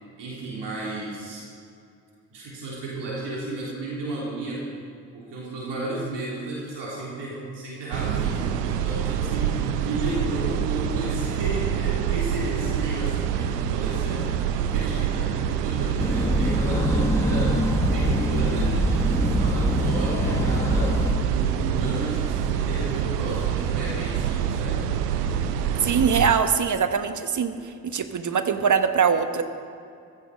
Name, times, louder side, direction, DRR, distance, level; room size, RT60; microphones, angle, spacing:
voice 1, 0.2-1.5 2.3-4.7 5.1-25.0, right 2 dB, 60° right, -5 dB, 3.6 m, -33 dB
sound 1, 7.9-26.3, right 9 dB, 85° right, 0.7 m, -26 dB
sound 2, 16.0-21.1, left 1 dB, 5° left, 1.5 m, -24 dB
sound 3, 16.7-22.7, left 5 dB, 50° left, 1.6 m, -41 dB
voice 2, 25.8-29.4, right 6 dB, 40° right, 9 dB, 1.2 m, -22 dB
15.5 x 13.5 x 5.1 m, 2.5 s
hypercardioid pair, 40°, 46 cm